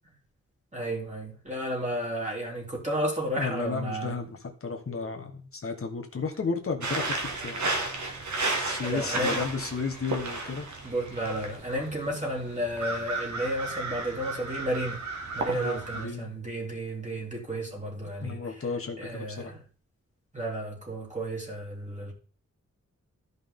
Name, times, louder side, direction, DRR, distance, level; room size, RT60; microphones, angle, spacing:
voice 1, 0.7-4.2 8.8-9.4 10.8-15.0 15.3-18.4 19.0-19.6 20.3-22.1, right 1 dB, 25° right, 3.1 m, -32 dB
voice 2, 3.4-7.1 7.4-7.7 8.6-10.7 15.5-16.3 18.2-19.5, left 4 dB, 50° left, 1.3 m, -33 dB
sound 1, 6.8-16.1, right 2 dB, 80° right, 1.8 m, -33 dB
13.5 x 5.5 x 3.7 m
wide cardioid pair, 120°, 29 cm